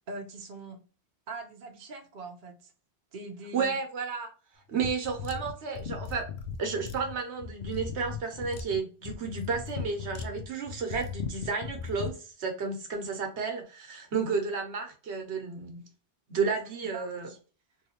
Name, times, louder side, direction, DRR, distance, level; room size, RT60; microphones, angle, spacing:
voice 1, 0.1-0.8 1.3-2.7 3.1-3.8 16.8-17.4, right 3 dB, 50° right, 0.8 m, -42 dB
voice 2, 3.5-4.3 4.7-6.3 6.6-15.8 16.3-17.3, right 5 dB, 80° right, 1.1 m, -32 dB
sound 1, 4.8-12.2, left 6 dB, 70° left, 0.8 m, -38 dB
3.1 x 2.8 x 2.8 m
omnidirectional pair, 1.1 m